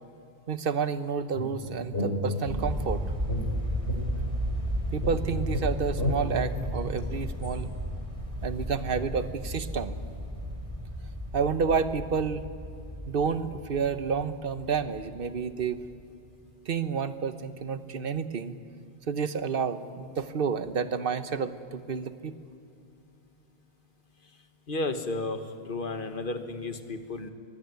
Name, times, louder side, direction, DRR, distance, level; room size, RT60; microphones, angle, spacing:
voice 1, 0.5-3.0 4.9-7.7 8.4-9.9 11.3-12.4 13.1-15.8 16.7-18.6 19.1-22.3, right 6 dB, 60° right, 12 dB, 1.1 m, -30 dB
sound 1, 1.3-2.8 3.3-4.7 5.0-7.5, left 1 dB, 85° left, 4.2 m, -33 dB
sound 2, 2.5-15.7, equal, 30° right, 3.5 m, -34 dB
voice 2, 24.7-27.3, left 2 dB, 55° left, 8 dB, 1.6 m, -33 dB
23.0 x 16.5 x 9.5 m, 2.6 s
omnidirectional pair, 1.1 m